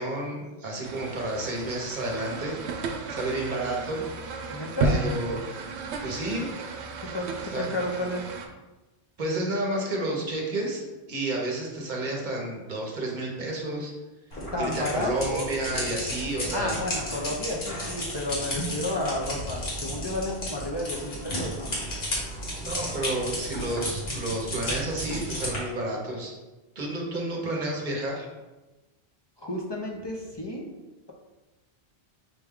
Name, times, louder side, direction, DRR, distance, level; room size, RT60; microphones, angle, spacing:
voice 1, 0.0-2.6 3.1-4.0 4.8-5.5 6.0-6.5 7.5-7.7 9.2-13.9 14.6-16.8 22.6-26.3 26.8-28.3, right 1 dB, 50° right, -1 dB, 0.9 m, -31 dB
sound 1, 0.8-8.5, right 3 dB, 85° right, 0.8 m, -33 dB
voice 2, 4.5-5.1 7.0-7.3 7.5-8.2 14.5-15.5 16.5-21.8 29.4-30.7, left 1 dB, 35° left, -2 dB, 0.4 m, -31 dB
sound 2, 14.3-25.6, equal, 65° left, 1.5 m, -33 dB
5.6 x 2.2 x 3.6 m, 1.1 s
omnidirectional pair, 1.1 m